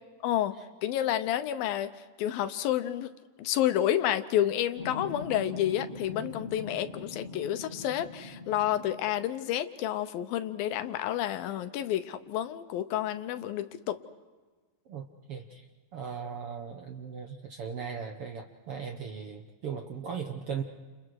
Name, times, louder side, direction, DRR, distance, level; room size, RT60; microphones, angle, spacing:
voice 1, 0.2-0.6 0.8-1.9 2.2-3.1 3.4-14.0, left 11 dB, 80° left, 10 dB, 2.6 m, -30 dB
sound 1, 4.8-9.2 10.5-10.7 11.0-13.1, left 3 dB, 20° left, 2.8 m, -43 dB
voice 2, 14.9-15.7 15.9-20.6, right 6 dB, 70° right, 4 dB, 1.3 m, -38 dB
30.0 x 29.0 x 4.7 m, 1.4 s
omnidirectional pair, 4.2 m